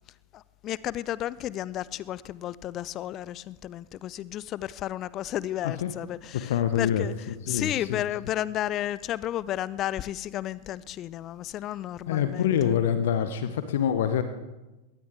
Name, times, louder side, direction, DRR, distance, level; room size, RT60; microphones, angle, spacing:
voice 1, 0.3-7.1 7.5-12.5, left 13 dB, 35° left, 20 dB, 0.4 m, -32 dB
voice 2, 6.3-8.0 12.1-14.2, left 9 dB, 55° left, 10 dB, 0.9 m, -26 dB
21.5 x 18.5 x 3.6 m, 1.1 s
figure-of-eight pair, 90°, 0 cm